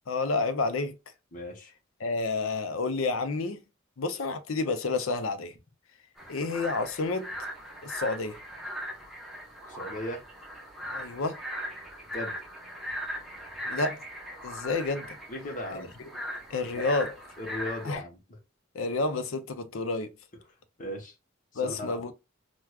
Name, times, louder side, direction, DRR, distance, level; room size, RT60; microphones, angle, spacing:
voice 1, 0.1-0.9 2.0-3.6 4.0-5.5 6.3-7.3 7.8-8.4 10.9-11.4 13.6-14.0 14.4-15.2 16.5-17.2 17.8-18.0 18.7-20.1 21.6-22.1, left 3 dB, 75° left, 0.5 m, -29 dB
voice 2, 1.3-1.7 9.7-10.2 12.1-12.3 15.3-15.9 16.7-16.9 17.4-18.4 20.8-21.1 21.5-22.0, left 1 dB, 40° left, 0.9 m, -37 dB
sound 1, 6.2-17.9, equal, ahead, 0.8 m, -39 dB
4.6 x 2.3 x 2.3 m
head